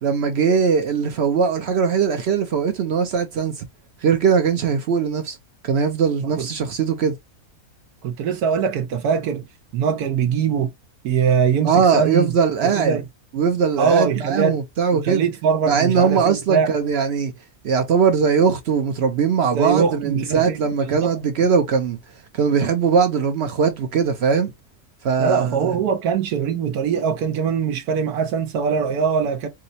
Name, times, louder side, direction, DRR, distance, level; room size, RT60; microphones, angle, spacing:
voice 1, 0.0-3.6 4.0-5.4 5.6-7.1 11.6-13.0 13.3-15.2 15.7-17.3 17.6-22.0 22.4-24.5 25.0-25.7, right 6 dB, 65° right, 0.6 m, -20 dB
voice 2, 8.0-9.4 9.7-10.7 11.0-12.3 12.6-13.0 13.8-14.6 14.9-16.7 19.5-21.2 25.2-29.5, right 6 dB, 85° right, 1.2 m, -22 dB
4.7 x 2.0 x 2.6 m
omnidirectional pair, 1.6 m